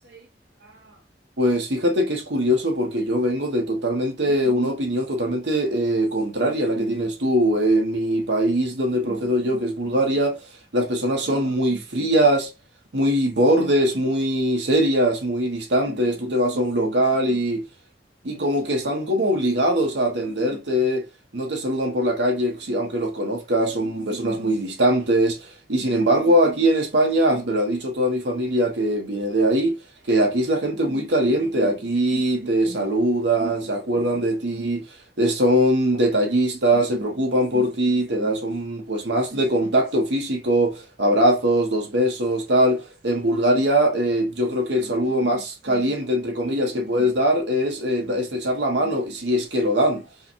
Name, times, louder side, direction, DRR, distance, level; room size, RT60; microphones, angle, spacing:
voice 1, 1.4-10.4 10.7-12.5 12.9-17.6 18.2-21.1 21.3-29.8 30.1-34.8 35.2-50.0, right 1 dB, 80° right, 1.0 m, -22 dB
4.8 x 2.2 x 3.0 m
head